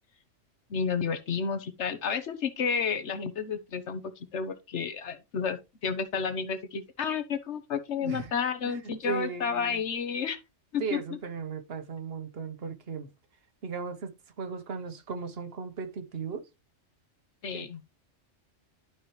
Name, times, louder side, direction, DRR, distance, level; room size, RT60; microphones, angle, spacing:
voice 1, 0.7-5.6 5.8-10.4 10.7-11.0 17.4-17.8, left 6 dB, 65° left, 1.2 m, -31 dB
voice 2, 8.0-8.3 8.6-9.8 10.8-13.1 13.6-16.5 17.5-17.9, right 5 dB, 55° right, 1.2 m, -37 dB
11.5 x 4.5 x 3.2 m
omnidirectional pair, 1.3 m